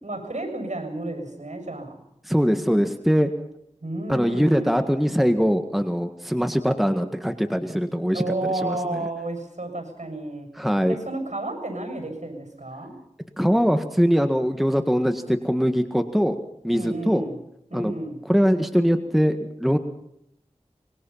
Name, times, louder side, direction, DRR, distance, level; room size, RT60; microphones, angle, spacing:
voice 1, 0.0-2.0 3.8-4.9 8.1-10.5 10.9-13.0 16.7-17.4 17.7-18.2, right 2 dB, 80° right, 5 dB, 7.3 m, -31 dB
voice 2, 2.2-3.3 4.1-8.3 8.6-9.1 10.6-11.0 13.4-16.4 16.6-17.2 17.7-18.0 18.3-19.8, equal, ahead, 7 dB, 1.8 m, -22 dB
25.0 x 22.5 x 5.8 m, 0.76 s
wide cardioid pair, 40°, 12 cm